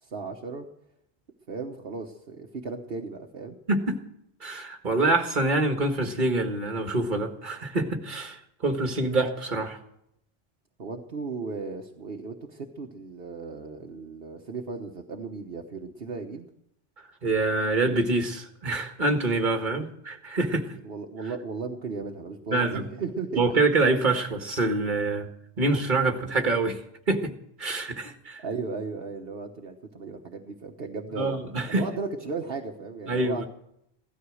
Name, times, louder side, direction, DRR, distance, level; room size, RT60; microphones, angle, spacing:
voice 1, 0.0-0.7 1.5-3.6 10.8-16.5 19.8-19.9 20.8-23.4 28.4-31.4 31.6-33.5, right 4 dB, 70° right, 2 dB, 1.4 m, -35 dB
voice 2, 3.7-4.0 4.4-9.8 17.2-20.8 22.5-22.8 23.4-25.3 25.6-26.8 27.1-27.3 27.6-28.4 31.2-31.9 33.1-33.5, right 2 dB, 50° right, 5 dB, 1.9 m, -26 dB
16.5 x 13.0 x 6.3 m, 0.76 s
omnidirectional pair, 1.0 m